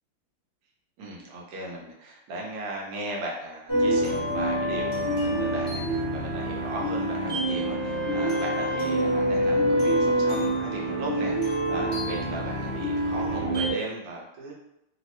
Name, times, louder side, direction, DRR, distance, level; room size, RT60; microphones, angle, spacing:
voice 1, 1.0-14.5, right 2 dB, 90° right, -2 dB, 1.7 m, -37 dB
sound 1, 3.7-13.7, right 1 dB, 25° right, 0.5 m, -26 dB
3.9 x 2.1 x 2.9 m, 0.87 s
omnidirectional pair, 2.4 m